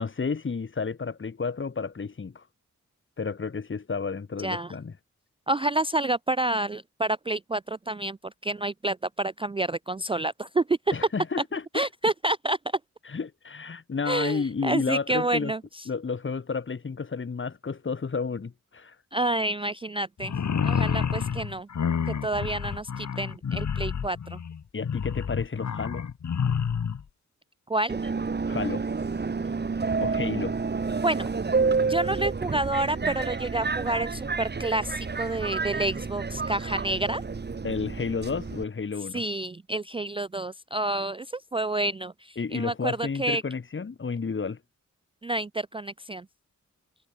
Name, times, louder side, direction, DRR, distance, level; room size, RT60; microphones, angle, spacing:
voice 1, 0.0-2.4 3.2-4.9 10.9-11.9 13.1-15.5 15.9-19.0 24.7-26.1 28.5-28.8 30.0-30.6 37.6-39.2 42.4-44.6, left 5 dB, 40° left, 2.4 m, -31 dB
voice 2, 4.4-4.7 5.5-8.2 8.4-11.0 11.7-12.6 14.1-15.8 19.1-20.3 20.6-21.7 22.2-24.4 27.7-28.0 31.0-31.3 31.9-37.2 39.1-43.4 45.2-46.3, right 2 dB, 20° right, 0.4 m, -29 dB
sound 1, 20.2-27.0, left 7 dB, 65° left, 2.8 m, -29 dB
Subway metro underground, 27.9-38.6, right 4 dB, 35° right, 1.8 m, -29 dB
wide cardioid pair, 145°, 31 cm